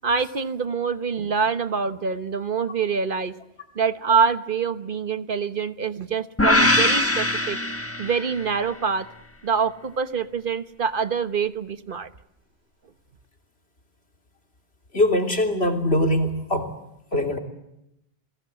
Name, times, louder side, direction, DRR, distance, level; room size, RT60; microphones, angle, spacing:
voice 1, 0.0-3.3 3.7-7.6 8.0-9.1 9.4-12.1, right 6 dB, 60° right, 11 dB, 1.3 m, -25 dB
sound 1, 6.4-8.6, left 1 dB, 15° left, 1.2 m, -21 dB
voice 2, 14.9-16.7 17.1-17.4, left 1 dB, 90° left, 3 dB, 3.5 m, -22 dB
29.5 x 21.5 x 7.8 m, 0.85 s
omnidirectional pair, 1.0 m